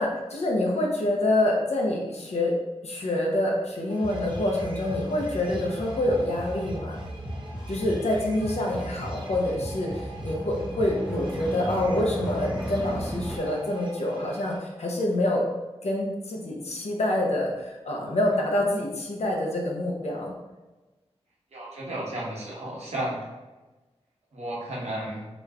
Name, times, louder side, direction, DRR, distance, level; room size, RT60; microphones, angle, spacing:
voice 1, 0.0-2.5 2.8-7.0 7.7-15.4 15.8-20.3, left 1 dB, 70° left, -1 dB, 0.7 m, -26 dB
sound 1, 3.9-14.6, right 2 dB, 45° right, 0.8 m, -47 dB
sound 2, 4.0-13.4, right 1 dB, 5° right, 0.4 m, -35 dB
voice 2, 21.5-23.2 24.3-25.3, right 1 dB, 70° right, -5 dB, 1.0 m, -33 dB
3.2 x 3.0 x 2.4 m, 1.1 s
wide cardioid pair, 65°, 11 cm